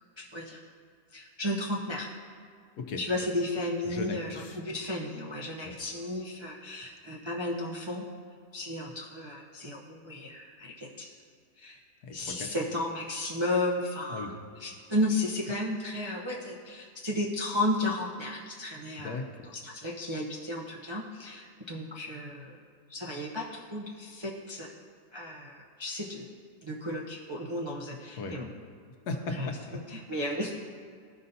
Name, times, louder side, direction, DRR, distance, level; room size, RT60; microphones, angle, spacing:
voice 1, 0.2-0.6 1.1-2.1 3.0-8.0 8.5-11.1 11.6-11.8 12.1-14.3 14.6-19.2 19.6-22.6 22.9-24.7 25.1-26.3 26.6-28.5 29.4-29.5 29.9-30.5, left 1 dB, 35° right, -5 dB, 0.4 m, -33 dB
voice 2, 3.8-4.6 5.6-5.8 12.0-12.5 14.1-14.3 19.0-19.5 28.2-28.4 29.1-29.6, left 3 dB, 70° left, 4 dB, 1.3 m, -37 dB
14.5 x 5.5 x 2.7 m, 2.2 s
omnidirectional pair, 1.8 m